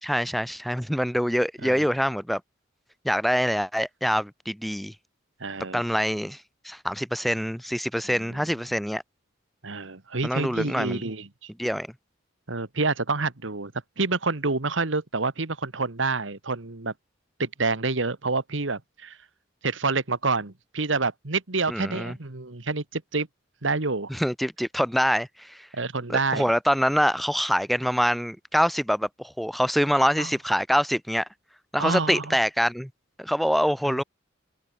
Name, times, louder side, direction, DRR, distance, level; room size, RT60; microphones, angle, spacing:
voice 1, 0.0-2.4 3.0-4.9 5.7-6.4 6.6-9.0 10.2-11.0 11.6-11.9 21.7-22.2 24.1-25.6 26.1-31.3 31.7-32.9 33.2-34.0, equal, ahead, 1.7 m, -25 dB
voice 2, 5.4-5.8 8.1-8.4 9.6-11.5 12.5-16.9 17.4-19.2 19.6-23.3 23.6-24.1 25.7-26.5 30.0-30.3 31.8-32.3, right 3 dB, 75° right, 1.7 m, -28 dB
head